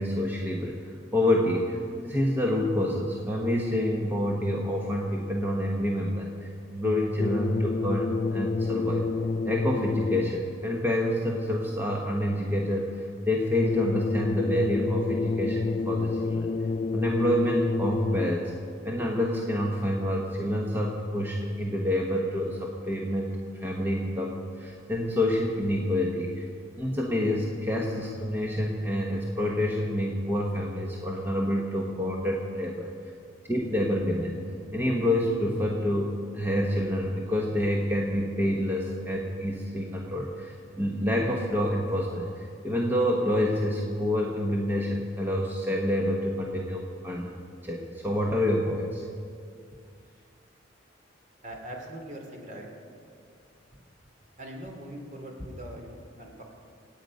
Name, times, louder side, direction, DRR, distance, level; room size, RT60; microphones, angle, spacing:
voice 1, 0.0-9.0 9.5-16.5 16.9-18.5 18.8-26.4 26.8-32.9 33.5-34.4 34.7-47.3 47.6-49.0, left 1 dB, 10° right, -1 dB, 1.2 m, -28 dB
sound 1, 7.1-10.6 13.5-18.6, left 3 dB, 35° left, 0.3 m, -29 dB
voice 2, 51.4-52.7 54.4-56.4, right 1 dB, 40° right, 1 dB, 2.8 m, -41 dB
27.5 x 9.1 x 5.3 m, 2.3 s
head